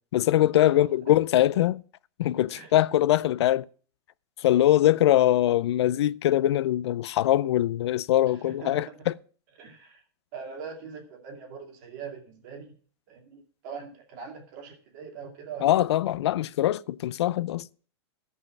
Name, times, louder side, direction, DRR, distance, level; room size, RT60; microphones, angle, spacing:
voice 1, 0.1-1.8 2.2-3.6 4.4-9.1 15.6-17.7, left 13 dB, 90° left, 0.4 m, -22 dB
voice 2, 8.4-9.1 9.6-10.0 10.3-12.7 13.1-15.9, right 6 dB, 45° right, 2.4 m, -42 dB
14.0 x 5.5 x 6.0 m
supercardioid pair, 170°, 14 cm